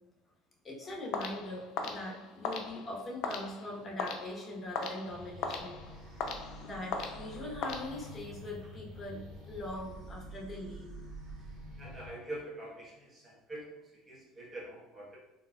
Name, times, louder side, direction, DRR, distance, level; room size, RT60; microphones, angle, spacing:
voice 1, 0.6-5.8 6.2-9.2 9.5-10.9, left 1 dB, 25° left, -2 dB, 1.0 m, -42 dB
sound 1, 1.1-8.4, left 4 dB, 65° left, 0.5 m, -40 dB
sound 2, 5.1-12.1, right 1 dB, 50° right, 0.8 m, -48 dB
voice 2, 11.8-13.7 14.1-15.2, right 1 dB, 15° right, -5 dB, 1.1 m, -44 dB
3.7 x 2.7 x 2.3 m, 0.96 s
supercardioid pair, 105°, 0 cm